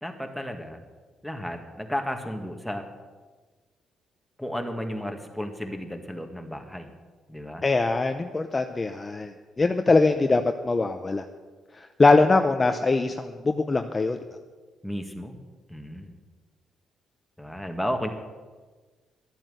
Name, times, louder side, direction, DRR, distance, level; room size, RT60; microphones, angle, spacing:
voice 1, 0.0-0.8 1.2-2.9 4.4-6.9 7.3-7.6 12.1-12.3 14.8-15.4 15.7-16.1 17.4-18.1, equal, ahead, 4 dB, 1.7 m, -33 dB
voice 2, 7.6-9.3 9.6-11.2 12.0-14.2, left 3 dB, 25° left, 6 dB, 0.7 m, -22 dB
12.0 x 9.0 x 7.8 m, 1.4 s
cardioid pair, 90°, 0 cm